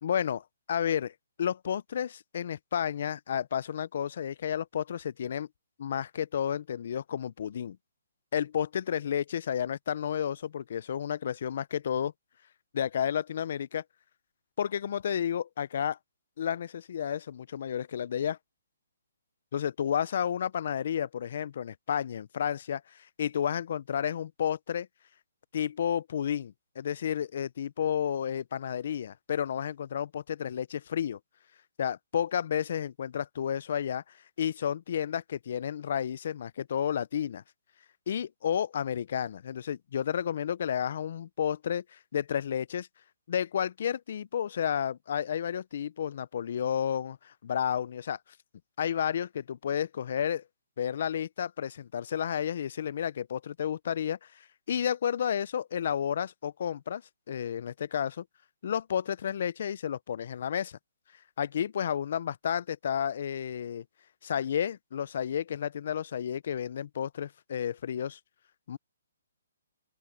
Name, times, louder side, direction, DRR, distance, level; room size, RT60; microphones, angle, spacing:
voice 1, 0.0-5.5 5.8-7.8 8.3-12.1 12.7-13.8 14.6-16.0 16.4-18.4 19.5-22.8 23.2-24.9 25.5-31.2 31.8-34.0 34.4-37.4 38.1-42.9 43.3-48.2 48.8-50.4 50.8-57.0 57.3-58.2 58.6-60.8 61.4-63.8 64.2-68.2 68.7-68.8, left 9 dB, 40° left, 0.4 m, -31 dB
open air
hypercardioid pair, 175°, 0 cm